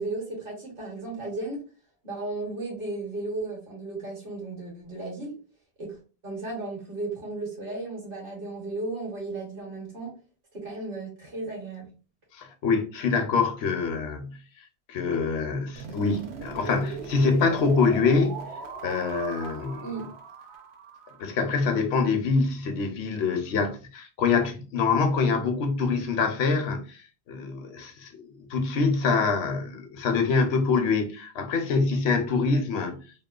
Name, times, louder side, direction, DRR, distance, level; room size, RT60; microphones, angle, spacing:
voice 1, 0.0-1.6 2.0-5.4 5.8-6.0 6.2-10.1 10.5-11.9 19.8-20.1, right 2 dB, 60° right, 1.3 m, -34 dB
voice 2, 12.3-14.4 14.9-18.5 18.8-19.9 21.2-27.0 27.3-33.0, left 4 dB, 80° left, 0.8 m, -25 dB
sound 1, 15.7-21.7, right 5 dB, 80° right, 0.8 m, -39 dB
2.9 x 2.1 x 2.3 m
omnidirectional pair, 1.1 m